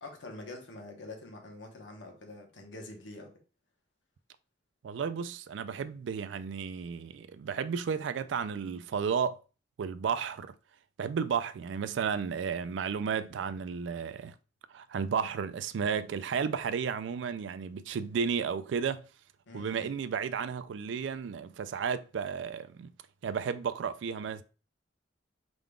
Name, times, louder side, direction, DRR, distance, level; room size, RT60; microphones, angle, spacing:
voice 1, 0.0-3.3 19.5-19.9, left 2 dB, 70° left, 1.0 m, -45 dB
voice 2, 4.8-9.4 9.8-10.5 11.0-14.3 14.7-19.0 19.5-22.9 23.2-24.4, right 6 dB, 70° right, 0.3 m, -33 dB
4.9 x 3.7 x 2.3 m
head